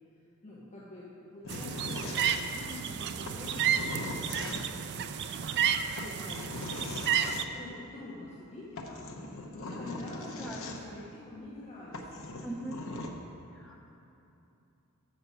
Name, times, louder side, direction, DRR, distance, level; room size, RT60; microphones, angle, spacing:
voice 1, 0.1-3.9 4.1-12.6, left 2 dB, 35° left, -8 dB, 1.1 m, -47 dB
sound 1, 1.4-2.8 3.2-4.9 6.0-7.5 8.4-8.5 8.8-11.1 11.6-11.7 11.9-13.1, left 2 dB, 65° left, 0.7 m, -40 dB
sound 2, 1.5-7.4, right 8 dB, 50° right, 0.3 m, -31 dB
voice 2, 10.2-11.0 12.4-12.8 13.5-13.8, right 1 dB, 5° left, -3 dB, 1.0 m, -42 dB
6.8 x 6.3 x 5.6 m, 2.9 s
head